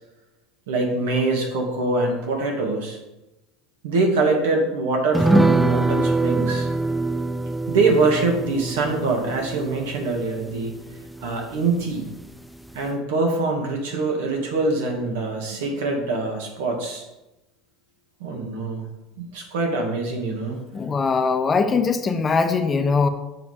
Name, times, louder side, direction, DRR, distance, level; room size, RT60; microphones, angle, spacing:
voice 1, 0.7-3.0 3.8-6.7 7.7-10.7 11.2-12.1 12.7-17.0 18.2-18.8 19.2-20.6, right 3 dB, 90° right, 1 dB, 1.9 m, -24 dB
sound 1, 5.1-11.9 12.2-12.3 12.7-12.8, right 2 dB, ahead, 0.4 m, -24 dB
voice 2, 20.7-23.1, left 4 dB, 25° left, 8 dB, 0.7 m, -21 dB
7.1 x 5.6 x 5.0 m, 0.97 s
supercardioid pair, 125°, 0 cm